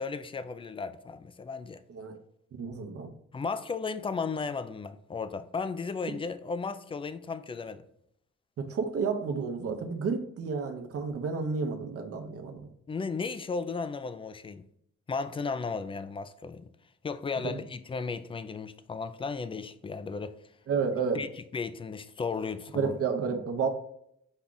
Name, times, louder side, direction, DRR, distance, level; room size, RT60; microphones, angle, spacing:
voice 1, 0.0-1.8 3.3-7.8 12.9-14.7 15.1-16.7 17.0-20.4 21.1-22.9, left 4 dB, 20° left, 0.3 m, -35 dB
voice 2, 2.5-3.1 8.6-12.6 17.4-17.6 20.7-21.2 22.7-23.7, right 5 dB, 50° right, 0.8 m, -31 dB
5.4 x 2.4 x 3.8 m
cardioid pair, 90°, 30 cm